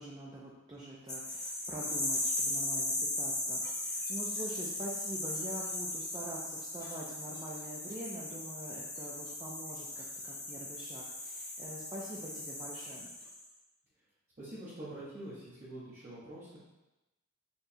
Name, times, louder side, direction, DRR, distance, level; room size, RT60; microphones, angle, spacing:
voice 1, 0.0-13.1, right 1 dB, 20° right, -4 dB, 0.4 m, -45 dB
sound 1, 1.1-13.4, left 2 dB, 15° left, 0.8 m, -37 dB
voice 2, 14.4-16.6, right 1 dB, 35° right, -10 dB, 0.9 m, -45 dB
4.4 x 3.1 x 2.7 m, 1.0 s
head